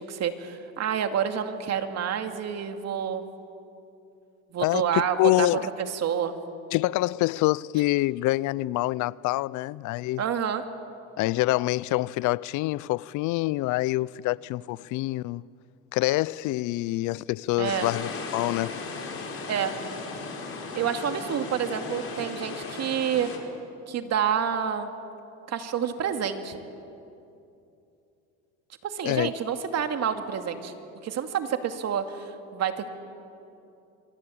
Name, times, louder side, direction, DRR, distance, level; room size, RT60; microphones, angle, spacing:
voice 1, 0.1-3.2 4.5-6.4 10.2-10.6 17.6-17.9 19.5-19.7 20.7-23.3 23.9-24.9 25.5-26.6 28.8-30.7 31.0-32.9, right 8 dB, 50° right, 2.4 m, -28 dB
voice 2, 4.6-5.6 6.7-10.2 11.2-15.4 15.9-18.8 29.0-29.3, left 18 dB, 65° left, 0.5 m, -26 dB
sound 1, 17.6-23.4, left 4 dB, 40° left, 5.2 m, -36 dB
26.5 x 22.5 x 8.6 m
supercardioid pair, 100°, 33 cm